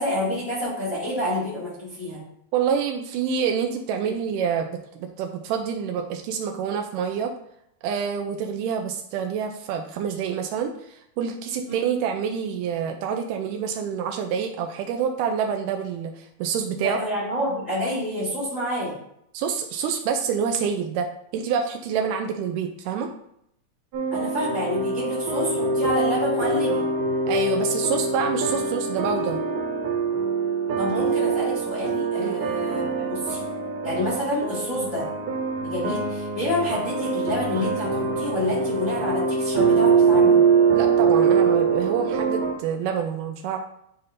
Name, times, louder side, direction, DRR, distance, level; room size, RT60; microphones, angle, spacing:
voice 1, 0.0-2.2 11.7-11.8 16.7-18.9 24.1-26.8 30.8-33.4 33.8-35.0 35.6-40.4, left 1 dB, 30° left, -9 dB, 1.7 m, -28 dB
voice 2, 2.5-7.3 7.8-17.0 19.3-23.1 27.3-29.4 32.2-32.4 40.7-43.6, right 7 dB, 90° right, 3 dB, 1.8 m, -27 dB
sound 1, 23.9-42.5, right 5 dB, 65° right, 2.3 m, -23 dB
11.0 x 4.2 x 2.6 m, 0.75 s
omnidirectional pair, 4.4 m